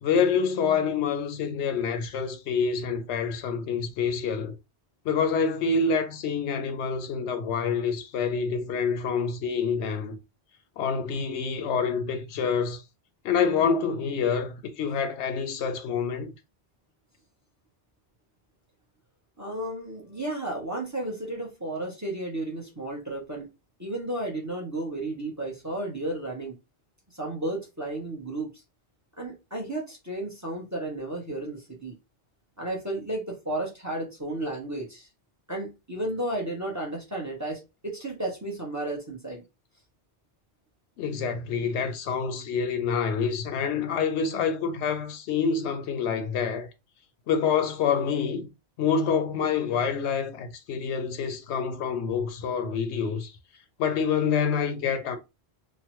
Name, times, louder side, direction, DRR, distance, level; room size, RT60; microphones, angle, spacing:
voice 1, 0.0-4.6 5.0-10.2 10.8-12.8 13.2-16.3 41.0-46.7 47.3-48.5 48.8-53.3 53.8-55.2, left 6 dB, 85° left, 0.9 m, -27 dB
voice 2, 19.4-23.5 23.8-26.6 27.1-28.5 29.2-32.0 32.6-35.1 35.5-39.4, right 1 dB, 20° right, 0.7 m, -33 dB
3.0 x 2.1 x 2.9 m
omnidirectional pair, 1.1 m